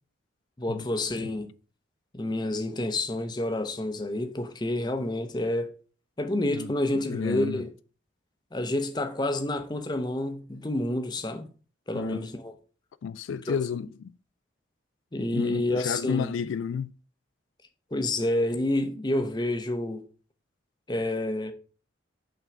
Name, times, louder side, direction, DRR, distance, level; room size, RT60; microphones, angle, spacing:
voice 1, 0.6-1.5 2.1-5.7 6.2-7.7 8.5-11.5 11.9-12.5 13.5-13.6 15.1-16.3 17.9-20.1 20.9-21.5, left 1 dB, 20° left, 0.7 m, -29 dB
voice 2, 7.1-7.6 11.9-12.3 13.0-14.1 15.3-16.9, left 6 dB, 85° left, 0.3 m, -31 dB
5.8 x 3.7 x 6.0 m
head